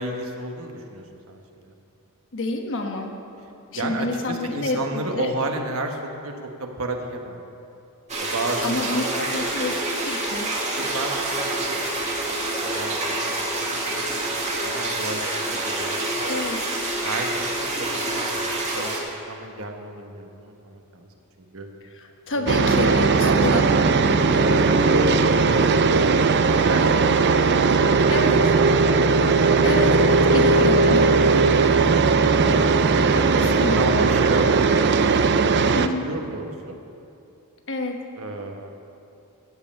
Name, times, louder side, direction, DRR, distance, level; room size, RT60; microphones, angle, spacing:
voice 1, 0.0-1.7 3.7-7.4 8.2-9.3 10.7-12.2 12.6-16.2 16.9-21.1 21.4-21.7 22.4-22.5 23.2-23.7 24.4-28.0 30.3-30.9 32.4-32.9 33.6-36.8 38.2-38.7, right 2 dB, 70° right, 3 dB, 1.3 m, -32 dB
voice 2, 2.3-3.1 3.7-5.3 8.6-10.5 16.3-16.7 22.0-23.7 28.1-28.5 29.6-31.1 33.1-34.2 35.7-36.1 37.7-38.0, left 2 dB, 60° left, 3 dB, 1.2 m, -28 dB
sound 1, 8.1-19.0, right 2 dB, 30° right, 1.8 m, -27 dB
sound 2, 22.5-35.9, right 4 dB, 50° right, 0.5 m, -18 dB
14.5 x 5.5 x 8.6 m, 2.7 s
head